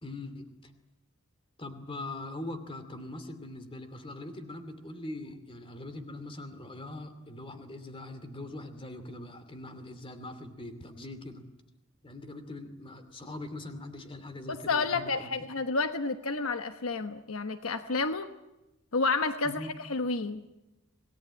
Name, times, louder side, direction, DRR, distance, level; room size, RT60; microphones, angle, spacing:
voice 1, 0.0-0.7 1.6-11.4 12.0-15.3 19.4-19.7, left 2 dB, 25° left, 9 dB, 2.6 m, -42 dB
voice 2, 14.5-18.3 18.9-20.4, left 3 dB, 70° left, 9 dB, 1.1 m, -30 dB
26.0 x 18.5 x 9.9 m, 1.0 s
head